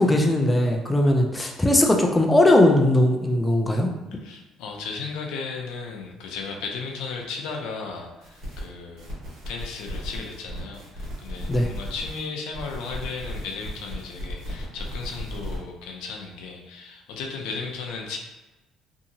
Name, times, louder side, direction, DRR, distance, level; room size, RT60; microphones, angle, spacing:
voice 1, 0.0-3.9 11.5-11.7, left 1 dB, 10° left, 1 dB, 0.3 m, -19 dB
voice 2, 4.2-9.1 9.5-18.2, left 4 dB, 85° left, 2 dB, 0.5 m, -35 dB
sound 1, 8.2-8.6 9.0-12.2 12.5-15.6, equal, 65° right, 1.3 m, -36 dB
2.7 x 2.7 x 2.7 m, 1.1 s
cardioid pair, 135°, 0 cm